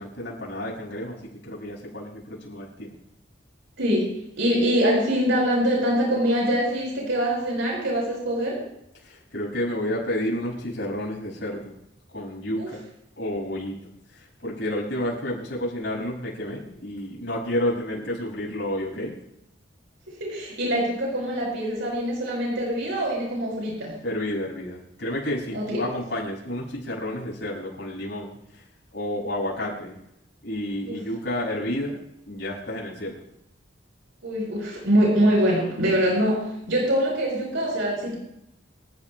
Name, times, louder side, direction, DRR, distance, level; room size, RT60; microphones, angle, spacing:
voice 1, 0.0-3.0 9.0-11.7 12.1-12.8 13.2-13.8 14.1-19.1 24.0-28.6 28.9-30.0 30.4-32.0 32.3-33.2, left 1 dB, 65° left, -3 dB, 6.1 m, -30 dB
voice 2, 3.8-4.1 4.4-8.6 12.6-12.7 20.2-23.9 25.5-25.8 30.9-31.0 34.2-36.4 36.7-38.1, equal, 75° right, -2 dB, 5.3 m, -23 dB
27.0 x 13.5 x 2.2 m, 0.81 s
head